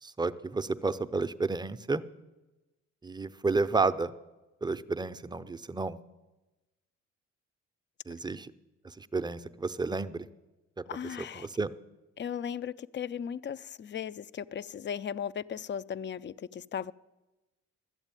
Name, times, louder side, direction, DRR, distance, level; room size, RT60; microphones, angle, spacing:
voice 1, 0.0-2.0 3.0-4.1 4.6-6.0 8.1-8.5 8.8-10.3 11.3-11.7, right 3 dB, 15° right, 0.5 m, -31 dB
voice 2, 10.9-11.5 12.2-16.9, left 8 dB, 40° left, 0.4 m, -37 dB
12.5 x 8.1 x 8.9 m
cardioid pair, 90°, 30 cm